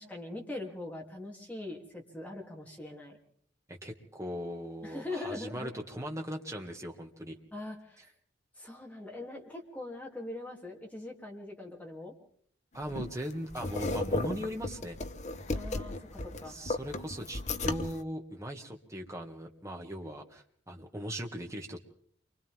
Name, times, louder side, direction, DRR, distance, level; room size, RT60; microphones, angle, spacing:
voice 1, 0.0-3.2 4.8-5.7 7.5-8.0 8.6-12.1 15.5-16.6, left 2 dB, 10° left, -1 dB, 3.2 m, -42 dB
voice 2, 3.7-7.4 12.7-15.0 16.5-21.8, equal, 15° right, 2 dB, 2.0 m, -39 dB
sound 1, 12.8-18.0, left 2 dB, 40° left, 1.0 m, -35 dB
29.0 x 24.5 x 3.7 m, 0.62 s
head